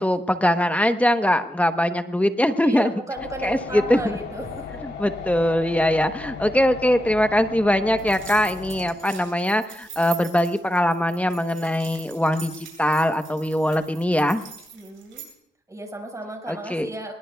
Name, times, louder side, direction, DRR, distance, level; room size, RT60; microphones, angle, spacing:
voice 1, 0.0-2.9 3.4-4.2 4.8-14.4 16.5-16.9, left 1 dB, 5° left, 8 dB, 1.0 m, -22 dB
voice 2, 2.6-4.8 14.7-15.3 15.7-17.1, right 2 dB, 15° right, 2 dB, 5.3 m, -34 dB
sound 1, 3.1-8.9, left 7 dB, 75° left, 3.5 m, -36 dB
sound 2, 8.0-15.3, right 8 dB, 75° right, 7.7 m, -42 dB
24.5 x 21.0 x 2.3 m, 0.76 s
cardioid pair, 90°, 20 cm